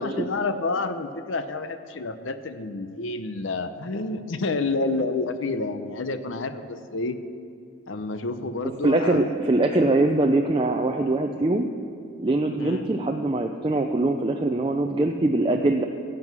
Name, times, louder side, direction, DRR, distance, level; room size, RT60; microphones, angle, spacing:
voice 1, 0.0-7.2 7.9-9.3 12.6-12.9, left 3 dB, 75° left, 10 dB, 0.7 m, -29 dB
voice 2, 8.8-11.7 12.2-15.9, right 2 dB, 25° right, 3 dB, 0.4 m, -22 dB
16.0 x 7.8 x 6.1 m, 2.4 s
head